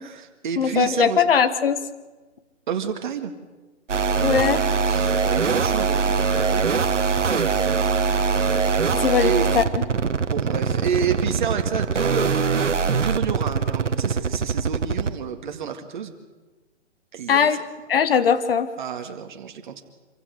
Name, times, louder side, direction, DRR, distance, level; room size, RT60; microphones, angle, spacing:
voice 1, 0.0-1.2 2.7-3.3 4.8-6.7 9.2-9.6 10.3-12.7 13.0-16.1 17.1-17.6 18.8-19.8, right 7 dB, 40° right, 6 dB, 2.0 m, -29 dB
voice 2, 0.6-1.8 4.2-4.6 9.0-9.6 17.3-17.6 17.9-18.7, left 7 dB, 50° left, 13 dB, 1.4 m, -20 dB
sound 1, 3.9-15.2, right 5 dB, 90° right, 1.3 m, -22 dB
26.0 x 15.5 x 6.4 m, 1.2 s
hypercardioid pair, 160°, 36 cm